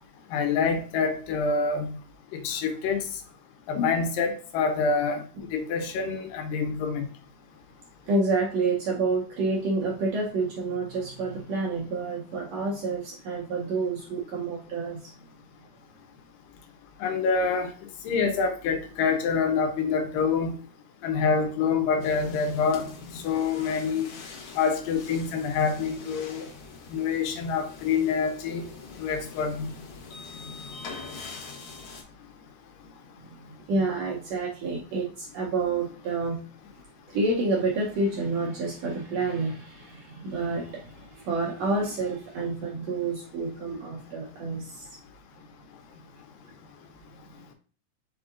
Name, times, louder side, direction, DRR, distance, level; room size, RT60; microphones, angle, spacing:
voice 1, 0.3-1.9 2.3-3.0 3.7-5.2 5.5-7.0 17.0-17.7 18.0-20.6 21.0-22.9 23.2-24.1 24.6-26.5 26.9-28.7 29.0-29.7, left 5 dB, 90° left, 2.4 m, -26 dB
voice 2, 8.1-15.1 33.2-36.4 37.1-45.0, right 3 dB, 70° right, 1.6 m, -29 dB
sound 1, 22.0-32.0, left 4 dB, 70° left, 1.3 m, -43 dB
5.5 x 3.6 x 2.4 m
omnidirectional pair, 3.8 m